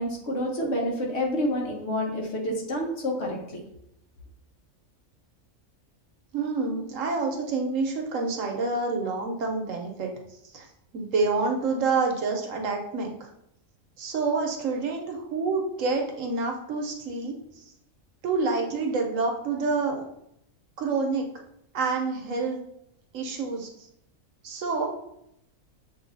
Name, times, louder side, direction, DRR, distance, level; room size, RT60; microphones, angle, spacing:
voice 1, 0.0-3.6, equal, 55° left, -1 dB, 1.2 m, -28 dB
voice 2, 6.3-10.1 10.5-10.7 10.9-13.3 14.0-17.7 18.2-20.0 20.8-21.3 21.7-22.6 23.1-23.9 24.4-25.0, right 4 dB, 75° right, 2 dB, 1.1 m, -28 dB
6.9 x 2.7 x 2.6 m, 0.78 s
omnidirectional pair, 1.4 m